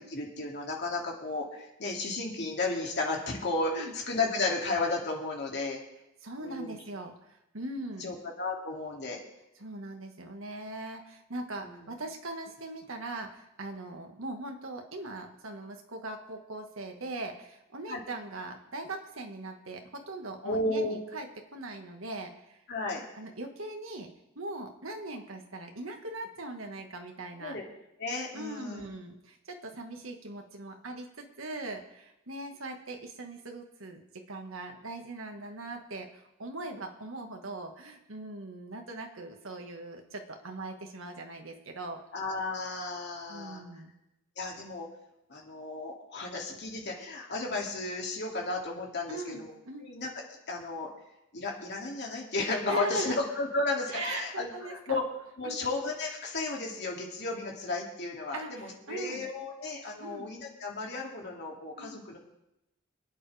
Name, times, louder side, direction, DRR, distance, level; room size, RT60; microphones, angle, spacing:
voice 1, 0.0-5.8 6.4-6.8 8.0-9.2 11.6-11.9 17.9-18.0 20.4-21.0 22.7-23.1 27.4-27.6 28.0-28.8 42.1-43.6 44.4-44.9 45.3-49.5 49.8-50.1 50.5-50.9 51.3-55.0 55.4-62.2, left 3 dB, 55° left, -1 dB, 2.7 m, -33 dB
voice 2, 3.7-4.0 6.2-8.1 9.6-21.3 21.5-22.6 23.1-27.6 28.3-42.0 43.3-43.9 49.1-49.9 52.7-53.1 53.9-55.0 55.4-55.6 58.3-59.3 60.0-60.3 61.7-62.0, right 2 dB, 70° right, 3 dB, 1.7 m, -40 dB
26.5 x 9.3 x 3.5 m, 0.90 s
head